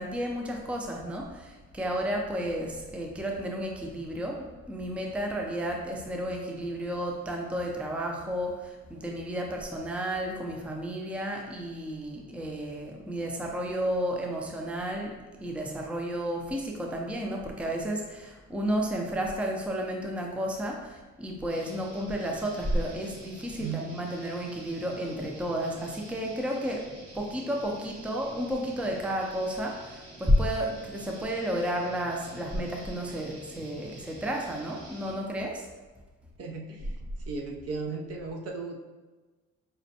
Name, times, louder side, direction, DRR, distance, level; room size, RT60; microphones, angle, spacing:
voice 1, 0.0-26.9 27.1-35.7, equal, 5° right, 0 dB, 0.5 m, -32 dB
sound 1, 21.5-35.2, right 1 dB, 85° right, 1.2 m, -49 dB
voice 2, 23.6-23.9 36.4-36.9 37.3-38.8, right 4 dB, 55° right, 2 dB, 0.6 m, -35 dB
5.0 x 2.1 x 2.8 m, 1.2 s
cardioid pair, 90°, 30 cm